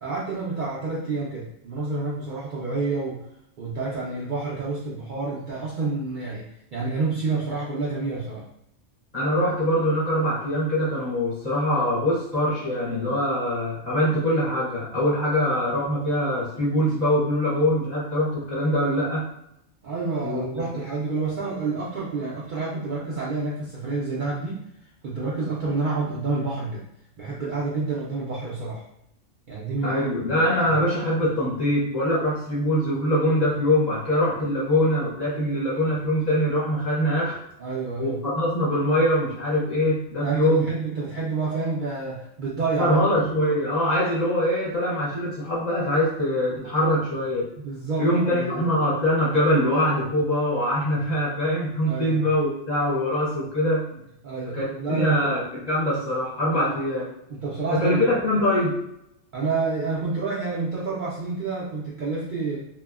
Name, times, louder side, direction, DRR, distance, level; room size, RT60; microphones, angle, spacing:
voice 1, 0.0-3.2 3.6-8.4 19.8-24.6 25.0-26.9 27.2-28.8 29.5-30.0 37.6-38.2 40.2-43.0 47.6-48.7 51.8-52.3 54.2-55.3 56.6-56.7 57.3-58.1 59.3-62.7, right 3 dB, 60° right, -6 dB, 0.5 m, -29 dB
voice 2, 9.1-19.3 20.2-20.6 29.8-37.4 38.0-40.7 42.8-47.5 48.0-53.9 54.5-57.0 57.7-58.8, equal, 40° left, -7 dB, 0.7 m, -23 dB
2.8 x 2.0 x 2.3 m, 0.79 s
omnidirectional pair, 1.3 m